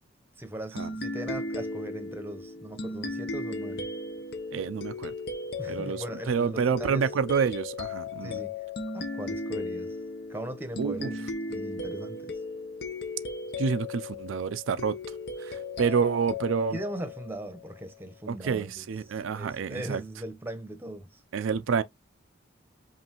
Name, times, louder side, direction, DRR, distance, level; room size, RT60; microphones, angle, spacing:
voice 1, 0.4-3.9 5.6-7.1 8.2-8.6 8.9-10.0 10.3-12.4 16.7-21.2, right 1 dB, 10° right, 0.8 m, -39 dB
sound 1, 0.8-17.9, left 3 dB, 55° left, 0.7 m, -36 dB
voice 2, 4.5-5.1 5.7-8.4 10.8-11.1 13.6-15.0 15.4-16.8 18.3-20.0 21.3-21.8, right 6 dB, 85° right, 0.4 m, -28 dB
5.4 x 2.5 x 2.9 m
head